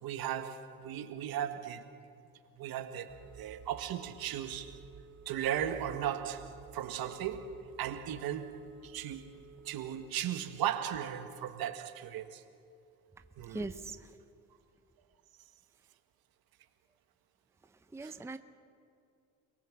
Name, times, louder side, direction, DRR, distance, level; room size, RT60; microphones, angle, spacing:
voice 1, 0.0-1.9 2.6-4.8 5.3-12.4 13.4-13.7 18.0-18.1, right 10 dB, 65° right, 1.7 m, -37 dB
Telephone, 3.1-10.1, right 7 dB, 45° right, 2.0 m, -54 dB
voice 2, 13.4-14.1 17.9-18.4, right 2 dB, 5° right, 0.7 m, -40 dB
29.0 x 18.0 x 7.5 m
cardioid pair, 110°, 38 cm